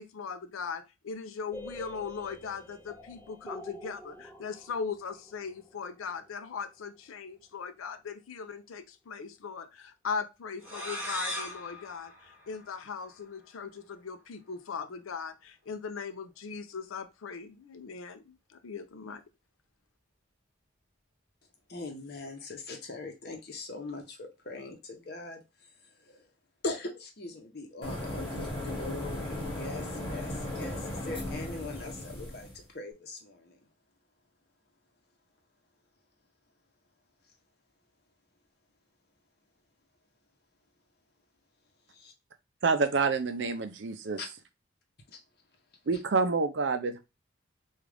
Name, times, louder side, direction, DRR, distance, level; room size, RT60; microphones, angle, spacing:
voice 1, 0.0-19.2, left 5 dB, 85° left, 0.5 m, -39 dB
sound 1, 1.5-7.3, left 1 dB, 10° left, 0.4 m, -48 dB
sound 2, 10.6-13.2, equal, 10° right, 0.9 m, -39 dB
voice 2, 21.7-25.4 26.1-26.2 26.6-33.6 41.9-42.1 44.2-44.3 45.1-45.2, left 3 dB, 50° left, 0.8 m, -41 dB
sound 3, 27.8-32.6, left 1 dB, 25° left, 1.3 m, -36 dB
voice 3, 42.6-44.2 45.9-47.0, right 4 dB, 60° right, 0.5 m, -27 dB
3.7 x 2.4 x 3.3 m
head